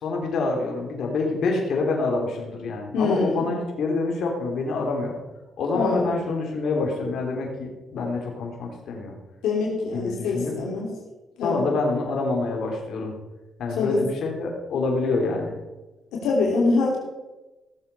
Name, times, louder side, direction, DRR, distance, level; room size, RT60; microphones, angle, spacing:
voice 1, 0.0-5.1 5.6-9.1 9.9-10.5 11.4-13.2 13.6-15.5, left 3 dB, 70° left, 0 dB, 3.3 m, -26 dB
voice 2, 2.9-3.5 5.6-6.1 9.4-10.9 11.4-11.7 13.8-14.0 16.1-17.0, left 3 dB, 90° left, -2 dB, 3.0 m, -24 dB
16.5 x 7.3 x 5.5 m, 1.1 s
cardioid pair, 90°, 0 cm